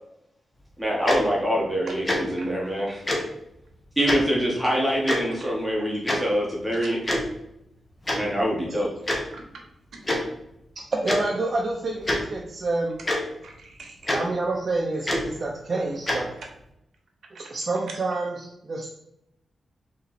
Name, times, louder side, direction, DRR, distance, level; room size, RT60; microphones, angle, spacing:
voice 1, 0.8-3.0 4.0-7.0 8.1-8.9, equal, 5° right, -4 dB, 1.1 m, -25 dB
Tick-tock, 1.1-1.2 2.0-2.2 3.1-3.2 4.0-4.2 5.1-5.2 6.1-6.2 7.0-7.2 8.1-8.2 9.1-9.2 10.0-10.2 11.1-11.2 12.0-12.2 13.1-13.2 14.1-14.2 15.0-15.2 16.1-16.2, left 1 dB, 25° left, 1.0 m, -24 dB
voice 2, 9.3-9.6 9.9-10.0 13.4-14.2 16.4-16.5 17.9-18.0, right 4 dB, 75° right, 2 dB, 1.0 m, -42 dB
voice 3, 10.9-12.9 14.1-16.3 17.5-18.9, right 2 dB, 45° right, -2 dB, 0.6 m, -28 dB
4.1 x 3.1 x 4.2 m, 0.81 s
cardioid pair, 90°, 0 cm